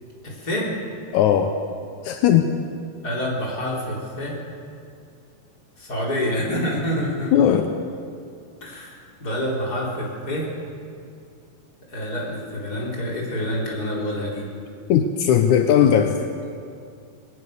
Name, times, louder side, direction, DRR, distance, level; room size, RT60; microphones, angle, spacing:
voice 1, 0.2-0.7 3.0-4.4 5.8-7.3 8.6-10.5 11.9-14.4, equal, 25° left, -4 dB, 4.6 m, -27 dB
voice 2, 1.1-1.5 2.0-2.5 7.3-7.7 14.9-16.2, left 9 dB, 75° left, 6 dB, 1.8 m, -17 dB
21.0 x 19.5 x 6.8 m, 2.4 s
omnidirectional pair, 4.4 m